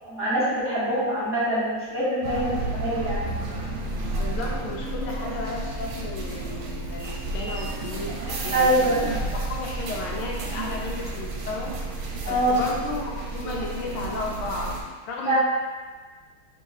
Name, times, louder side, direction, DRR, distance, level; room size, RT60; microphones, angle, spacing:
voice 1, 0.0-3.2 8.5-9.0 12.2-12.6 15.2-15.4, right 1 dB, 10° left, -11 dB, 0.9 m, -24 dB
sound 1, 2.2-14.8, right 2 dB, 80° right, 1.4 m, -31 dB
voice 2, 4.2-11.7 12.0-14.7 15.1-15.4, left 3 dB, 80° left, -1 dB, 1.6 m, -34 dB
4.7 x 3.8 x 2.7 m, 1.4 s
omnidirectional pair, 2.3 m